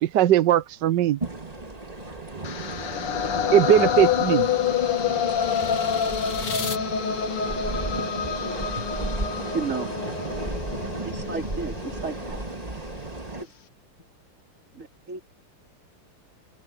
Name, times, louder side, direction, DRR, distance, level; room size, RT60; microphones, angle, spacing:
voice 1, 0.0-1.2 3.5-4.5, right 11 dB, 65° right, 1.3 m, -19 dB
sound 1, 1.2-13.4, right 2 dB, 20° right, 2.0 m, -34 dB
voice 2, 1.9-2.4 11.2-11.5 14.0-14.1, left 1 dB, 35° left, 8.2 m, -57 dB
sound 2, 2.4-12.5, left 8 dB, 80° left, 2.6 m, -27 dB
sound 3, 3.9-6.8, left 4 dB, 60° left, 3.3 m, -38 dB
voice 3, 9.5-9.9 11.0-12.4 13.3-13.5 14.7-15.2, right 4 dB, 35° right, 4.0 m, -33 dB
omnidirectional pair, 2.4 m